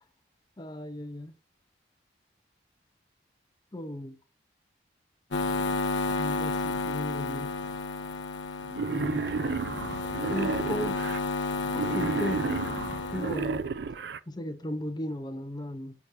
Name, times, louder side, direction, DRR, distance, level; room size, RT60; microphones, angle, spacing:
voice 1, 0.6-1.3 3.7-4.2 6.2-7.5 8.9-9.2 10.3-11.0 11.7-12.5 13.1-13.6 14.3-15.9, left 1 dB, 25° left, 0.7 m, -35 dB
sound 1, 5.3-13.6, left 3 dB, 85° left, 0.7 m, -32 dB
Wild animals, 8.7-11.2 11.7-14.2, right 4 dB, 65° right, 0.4 m, -32 dB
6.4 x 6.0 x 2.7 m
head